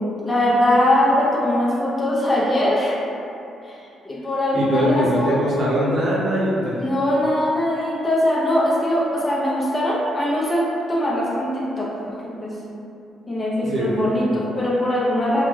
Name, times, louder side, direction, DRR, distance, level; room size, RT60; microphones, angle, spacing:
voice 1, 0.0-3.0 3.6-3.8 4.0-5.4 6.8-10.6 10.9-12.6 13.3-15.5, left 1 dB, 20° left, -6 dB, 0.5 m, -21 dB
voice 2, 4.5-6.8 13.6-13.9, equal, 55° right, -7 dB, 0.8 m, -21 dB
2.4 x 2.2 x 3.1 m, 2.7 s
cardioid pair, 90°, 0 cm